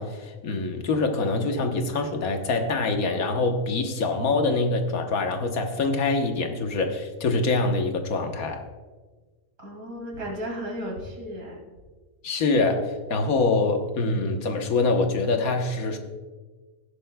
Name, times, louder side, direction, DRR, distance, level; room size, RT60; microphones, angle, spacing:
voice 1, 0.0-8.6 12.2-16.0, left 3 dB, 85° left, 5 dB, 1.5 m, -25 dB
voice 2, 9.6-11.6, equal, 85° right, -1 dB, 2.9 m, -34 dB
16.0 x 10.5 x 2.2 m, 1.4 s
omnidirectional pair, 1.5 m